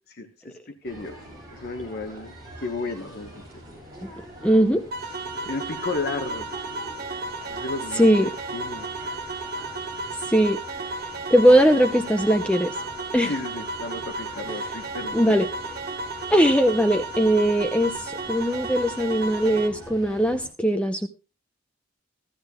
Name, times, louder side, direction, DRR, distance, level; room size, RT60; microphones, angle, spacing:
voice 1, 0.2-0.5 0.8-1.1 1.6-2.3 2.6-3.4 5.5-6.5 7.5-8.0 8.5-8.8 13.2-15.4, left 3 dB, 50° left, 5 dB, 1.2 m, -32 dB
sound 1, 0.8-20.5, equal, 20° right, 7.8 m, -45 dB
voice 2, 4.4-4.8 7.9-8.3 10.3-10.6 11.3-12.7 13.1-13.3 14.5-14.6 15.1-15.5 16.3-21.1, equal, 5° left, 6 dB, 0.6 m, -20 dB
sound 2, 4.9-19.7, right 2 dB, 50° right, 1.4 m, -33 dB
15.5 x 13.5 x 2.3 m, 0.31 s
head